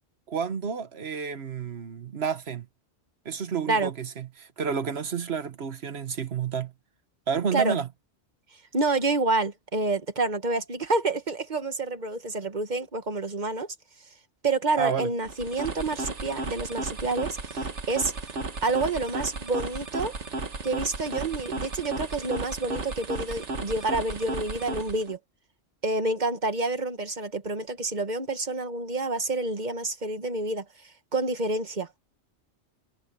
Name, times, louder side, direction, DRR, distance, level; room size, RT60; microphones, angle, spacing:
voice 1, 0.3-2.7 3.2-6.7 7.3-7.9 14.8-15.1, right 6 dB, 65° right, 1.5 m, -30 dB
voice 2, 8.7-13.7 14.4-18.1 18.6-20.2 20.6-25.2 25.8-31.9, right 3 dB, 40° right, 1.5 m, -28 dB
sound 1, 15.2-25.1, right 3 dB, 85° right, 2.0 m, -34 dB
omnidirectional pair, 1.2 m